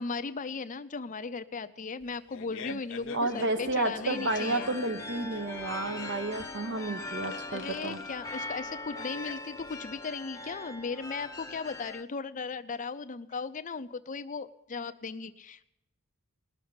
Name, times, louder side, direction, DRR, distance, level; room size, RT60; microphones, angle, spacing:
voice 1, 0.0-4.7 7.5-15.6, left 4 dB, 35° left, 11 dB, 0.6 m, -37 dB
Fart, 2.0-10.0, left 5 dB, 60° left, 0.9 m, -46 dB
voice 2, 3.1-8.0, right 2 dB, 55° right, 9 dB, 1.1 m, -31 dB
sound 1, 3.3-12.0, left 2 dB, 15° left, 0.9 m, -41 dB
20.0 x 6.6 x 9.6 m, 0.86 s
head